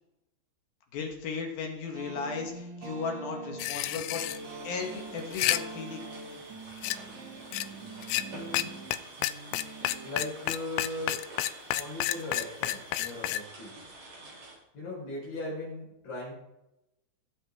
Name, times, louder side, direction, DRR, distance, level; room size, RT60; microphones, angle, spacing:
voice 1, 0.9-4.2 4.6-6.1, left 5 dB, 65° left, 2 dB, 2.6 m, -36 dB
sound 1, 1.9-10.3, right 3 dB, 85° right, 5.9 m, -43 dB
sound 2, 3.6-4.4 5.2-5.6 6.8-7.0 7.5-7.7 8.0-8.2 8.5-8.6 8.9-9.0 9.2-13.4, left 15 dB, 85° left, 3.3 m, -30 dB
sound 3, 4.1-14.6, right 2 dB, 40° right, 3.7 m, -48 dB
voice 2, 8.3-8.7 10.0-11.2 11.7-13.7 14.7-16.3, left 1 dB, 45° left, -4 dB, 6.0 m, -38 dB
21.5 x 7.7 x 3.6 m, 0.86 s
omnidirectional pair, 6.0 m